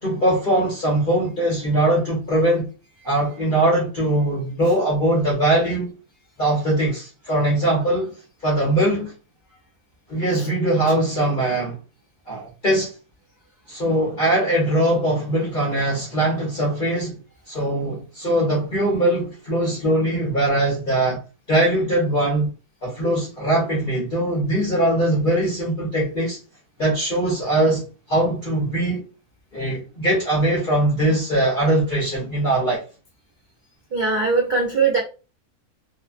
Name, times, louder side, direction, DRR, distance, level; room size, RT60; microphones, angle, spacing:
voice 1, 0.0-2.7 3.0-5.9 6.4-8.1 8.4-9.1 10.1-11.8 12.3-12.9 13.7-17.2 17.5-21.2 21.5-22.5 22.8-26.4 26.8-29.0 29.5-32.8, right 1 dB, 40° left, 0.8 m, -21 dB
voice 2, 33.9-35.0, right 4 dB, 50° right, 0.5 m, -20 dB
2.8 x 2.2 x 2.4 m
omnidirectional pair, 1.6 m